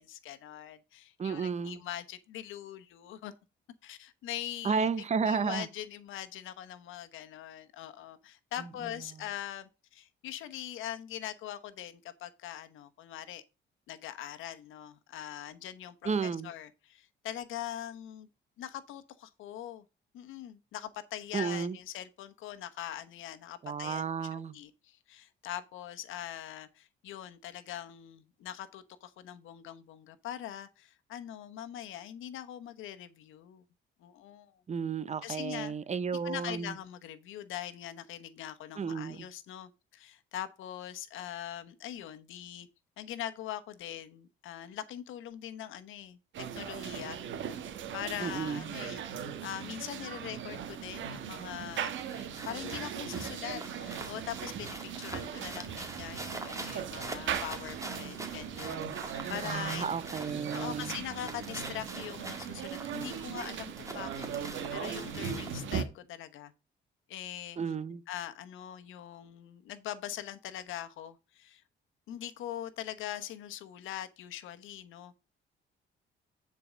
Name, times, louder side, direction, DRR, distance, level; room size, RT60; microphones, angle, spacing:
voice 1, 0.0-3.3 3.8-13.4 13.9-18.3 18.6-19.8 20.1-24.0 24.3-33.6 34.0-34.6 35.2-35.7 36.2-42.7 43.0-47.2 47.9-51.9 52.4-66.5 67.1-67.6 68.1-71.6 72.1-75.2, left 11 dB, 85° left, 1.1 m, -42 dB
voice 2, 1.2-1.8 4.6-5.7 16.0-16.5 21.3-21.8 23.6-24.5 34.7-36.7 38.8-39.3 48.2-48.7 59.4-60.9 67.6-68.0, right 6 dB, 35° right, 0.8 m, -32 dB
sound 1, 46.3-65.8, right 8 dB, 75° right, 1.4 m, -39 dB
sound 2, 51.6-65.7, right 2 dB, 15° right, 2.1 m, -45 dB
9.7 x 4.7 x 5.0 m
cardioid pair, 90°, 20 cm